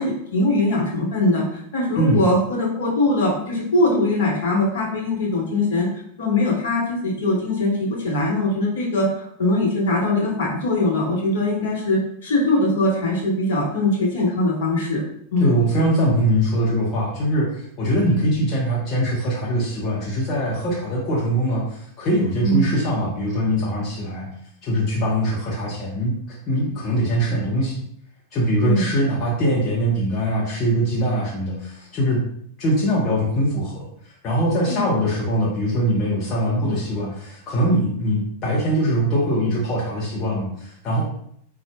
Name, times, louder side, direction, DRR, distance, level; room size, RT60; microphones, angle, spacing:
voice 1, 0.0-5.9 6.2-15.0 15.3-15.6 22.4-22.7 28.6-28.9 34.7-34.9, left 2 dB, 65° left, -3 dB, 1.1 m, -21 dB
voice 2, 15.4-24.3 24.6-27.8 28.3-32.2 32.6-41.0, equal, 35° left, -5 dB, 0.8 m, -22 dB
3.9 x 2.4 x 2.2 m, 0.70 s
figure-of-eight pair, 90°, 0 cm